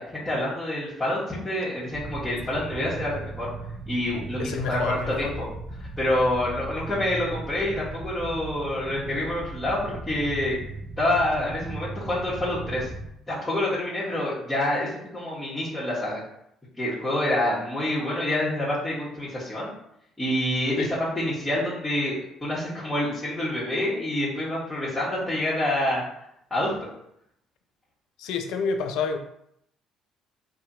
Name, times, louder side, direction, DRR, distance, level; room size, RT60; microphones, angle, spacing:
voice 1, 0.0-3.5 3.9-5.5 6.0-10.6 11.0-12.9 13.3-16.2 16.8-19.7 20.2-26.0 26.5-26.9, left 1 dB, 15° left, -11 dB, 1.2 m, -27 dB
sound 1, 1.9-13.1, right 3 dB, 40° right, 0.5 m, -37 dB
voice 2, 4.4-5.3 20.8-20.9 28.2-29.2, left 5 dB, 65° left, 6 dB, 0.3 m, -28 dB
2.7 x 2.6 x 2.6 m, 0.73 s
hypercardioid pair, 50°, 0 cm